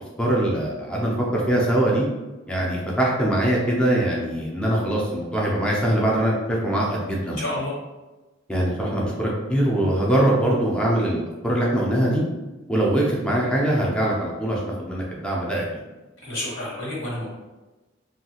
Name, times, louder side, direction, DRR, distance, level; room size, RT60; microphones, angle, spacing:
voice 1, 0.2-2.0 2.5-7.4 8.5-12.2 12.7-15.6, right 1 dB, 5° left, -4 dB, 0.4 m, -22 dB
voice 2, 7.4-7.7 16.2-17.2, left 1 dB, 85° left, -5 dB, 1.2 m, -29 dB
2.7 x 2.3 x 2.8 m, 1.1 s
head